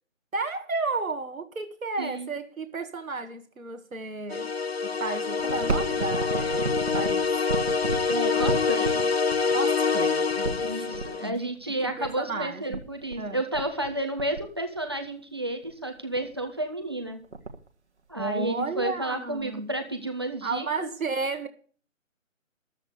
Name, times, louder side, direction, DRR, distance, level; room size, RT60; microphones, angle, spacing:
voice 1, 0.3-4.5 4.8-7.3 9.5-12.8 13.2-13.4 18.2-19.7 20.4-21.5, right 3 dB, 85° right, 1.9 m, -33 dB
voice 2, 2.0-2.3 8.1-9.0 10.6-17.2 18.1-20.9, right 1 dB, 20° right, 1.2 m, -31 dB
sound 1, 4.3-11.3, left 5 dB, 50° left, 0.5 m, -26 dB
sound 2, 5.4-11.0 12.0-12.1 12.3-12.4 12.7-13.2 13.5-13.9 14.2-15.1 15.6-15.7 16.1-16.4 16.8-16.9 17.1-17.7 18.2-19.0 19.4-19.5 20.3-20.4, right 3 dB, 55° right, 1.7 m, -33 dB
13.0 x 7.3 x 8.3 m
figure-of-eight pair, 180°, 40 cm